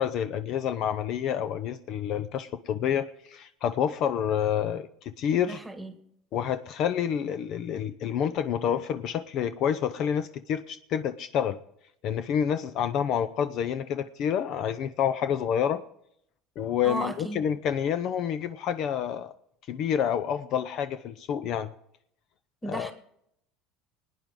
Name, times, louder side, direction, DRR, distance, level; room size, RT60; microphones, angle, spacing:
voice 1, 0.0-5.6 6.3-11.6 12.0-15.8 16.6-19.3 19.7-21.7 22.7-22.9, left 9 dB, 55° left, 12 dB, 0.6 m, -28 dB
voice 2, 5.4-5.9 16.8-17.5 22.6-22.9, right 1 dB, 5° right, 6 dB, 1.7 m, -35 dB
23.0 x 9.5 x 3.8 m, 0.73 s
cardioid pair, 130°, 0 cm